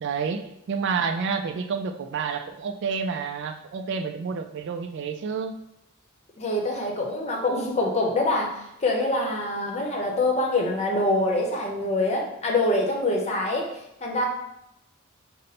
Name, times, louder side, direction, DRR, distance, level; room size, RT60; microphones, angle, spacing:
voice 1, 0.0-5.6, right 5 dB, 60° right, 7 dB, 0.3 m, -29 dB
voice 2, 6.4-13.7 14.0-14.2, left 2 dB, 30° left, -1 dB, 0.8 m, -25 dB
5.2 x 2.1 x 4.1 m, 0.84 s
head